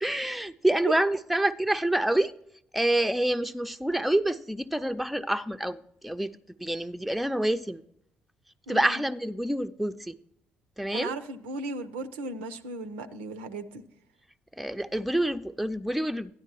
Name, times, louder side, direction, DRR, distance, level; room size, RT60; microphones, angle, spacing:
voice 1, 0.0-2.3 2.7-6.3 6.6-7.8 8.7-10.2 10.8-11.1 14.6-16.3, right 1 dB, ahead, 0.4 m, -27 dB
voice 2, 8.7-9.0 10.9-13.8, right 3 dB, 85° right, 0.5 m, -36 dB
12.5 x 10.0 x 2.8 m
hypercardioid pair, 45°, 6 cm